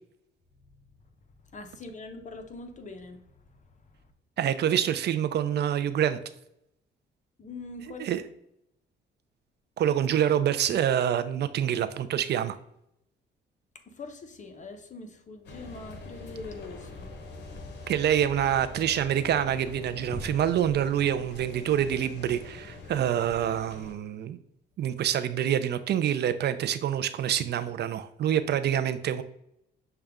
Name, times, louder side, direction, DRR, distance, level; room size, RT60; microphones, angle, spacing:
voice 1, 1.4-4.0 7.4-8.1 13.7-17.1, left 3 dB, 40° left, 0.8 m, -43 dB
voice 2, 4.4-6.2 8.0-8.2 9.8-12.6 17.9-24.4 24.8-29.2, right 10 dB, 60° right, 0.4 m, -26 dB
sound 1, 15.4-23.9, left 3 dB, 60° left, 1.0 m, -43 dB
6.4 x 2.3 x 3.5 m
cardioid pair, 90°, 20 cm